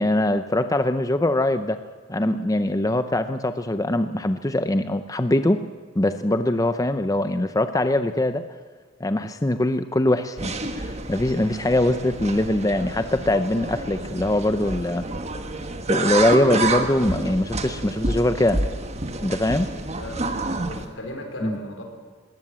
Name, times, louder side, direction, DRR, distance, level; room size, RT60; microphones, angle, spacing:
voice 1, 0.0-1.8 2.1-5.6 6.0-8.5 9.0-15.1 15.9-18.6 19.2-19.7 21.4-21.6, left 1 dB, 15° left, 10 dB, 0.6 m, -22 dB
sound 1, 10.4-20.9, right 2 dB, 35° right, 1.5 m, -29 dB
voice 2, 20.0-21.8, left 1 dB, 70° left, 3 dB, 4.5 m, -37 dB
20.0 x 18.0 x 7.6 m, 1.5 s
head